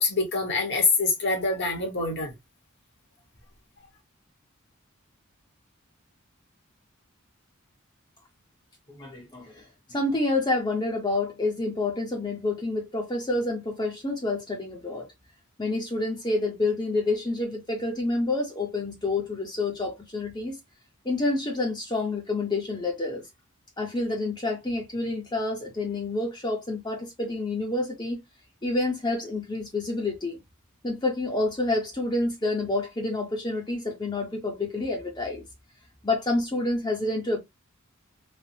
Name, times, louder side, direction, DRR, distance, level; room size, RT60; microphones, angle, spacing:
voice 1, 0.0-2.3, left 3 dB, 55° left, 1.1 m, -25 dB
voice 2, 8.9-9.6 9.9-15.1 15.6-20.6 21.0-23.2 23.8-28.2 28.6-30.4 30.8-35.4 36.0-37.4, left 2 dB, 20° left, 0.7 m, -28 dB
3.3 x 2.0 x 2.6 m
head